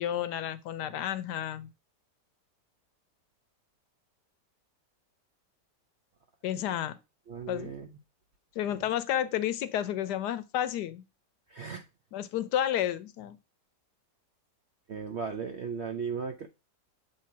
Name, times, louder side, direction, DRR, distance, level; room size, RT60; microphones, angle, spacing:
voice 1, 0.0-1.7 6.4-7.0 7.5-7.7 8.6-11.0 12.1-13.4, left 11 dB, 80° left, 1.2 m, -31 dB
voice 2, 7.3-7.9 11.5-11.9 14.9-16.5, right 6 dB, 60° right, 0.7 m, -36 dB
7.7 x 3.5 x 4.6 m
omnidirectional pair, 1.8 m